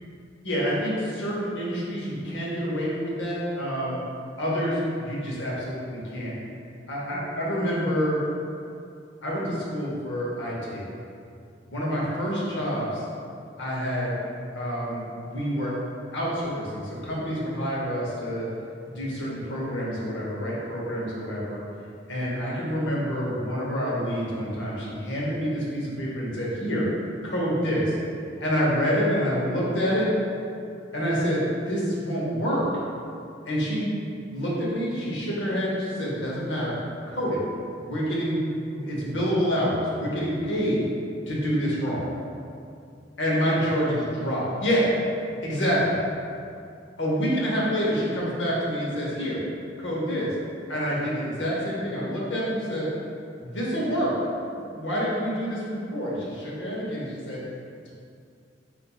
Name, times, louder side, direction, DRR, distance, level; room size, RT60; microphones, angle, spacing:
voice 1, 0.4-4.0 4.4-6.4 6.9-8.2 9.2-10.9 11.7-13.0 13.6-14.1 14.5-15.7 16.1-18.5 18.9-21.6 22.1-26.9 27.2-27.9 28.4-30.1 30.9-32.7 33.4-33.9 34.3-36.8 37.1-37.4 37.8-40.8 41.3-42.0 43.2-44.9 45.4-46.0 47.0-49.4 49.8-50.3 50.7-52.9 53.4-54.1 54.7-57.4, equal, 80° left, -5 dB, 0.8 m, -27 dB
4.2 x 2.5 x 2.3 m, 2.5 s
head